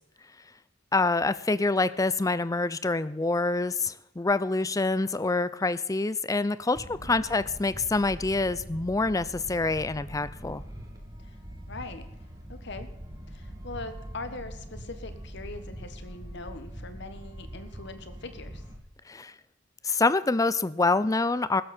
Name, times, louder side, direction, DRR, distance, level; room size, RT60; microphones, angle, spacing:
voice 1, 0.9-10.6 19.1-19.3 19.8-21.6, left 3 dB, 15° left, 16 dB, 0.5 m, -26 dB
sound 1, 6.7-18.8, equal, 20° right, 2.5 m, -43 dB
voice 2, 11.7-12.1 12.5-12.9 13.3-18.6, left 2 dB, 60° left, 9 dB, 1.5 m, -41 dB
15.5 x 13.0 x 4.4 m, 0.86 s
head